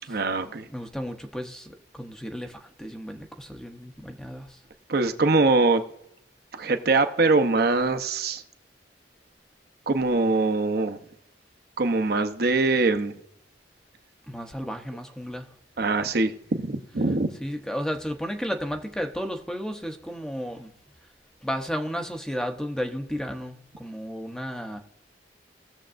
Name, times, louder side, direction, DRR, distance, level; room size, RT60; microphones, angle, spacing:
voice 1, 0.1-0.7 4.9-5.8 6.5-8.4 9.9-11.0 11.8-13.2 15.8-17.3, right 3 dB, 60° right, 0.8 m, -23 dB
voice 2, 0.7-4.6 14.3-15.5 17.4-20.7 21.4-24.8, equal, 5° left, 0.7 m, -33 dB
19.0 x 7.2 x 2.5 m
head